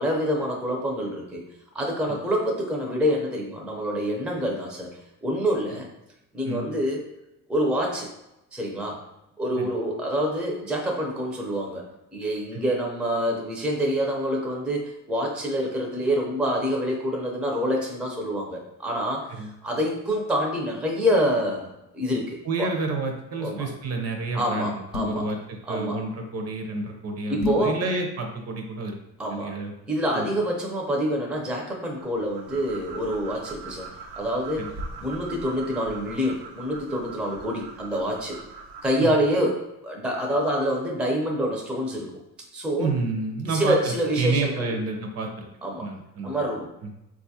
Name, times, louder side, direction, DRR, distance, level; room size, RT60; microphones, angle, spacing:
voice 1, 0.0-1.4 1.7-5.9 6.3-7.0 7.5-8.1 8.5-9.0 9.4-22.7 23.4-23.7 24.3-25.3 25.6-26.0 27.3-27.8 29.2-29.5 29.9-33.9 34.1-34.7 35.0-38.4 38.8-42.1 42.5-42.9 43.5-44.8 45.6-45.9 46.2-46.7, equal, 5° right, 0 dB, 0.5 m, -26 dB
voice 2, 22.4-24.7 25.0-25.4 25.7-29.0 29.4-29.7 30.1-30.3 34.6-34.7 39.0-39.1 42.8-45.5 45.8-46.4, right 3 dB, 45° right, 3 dB, 0.6 m, -29 dB
sound 1, 24.9-25.3 27.4-27.7, left 6 dB, 75° left, 0.7 m, -30 dB
sound 2, 32.0-39.2, right 3 dB, 85° right, 0.6 m, -41 dB
3.9 x 2.4 x 2.7 m, 0.90 s
cardioid pair, 110°, 36 cm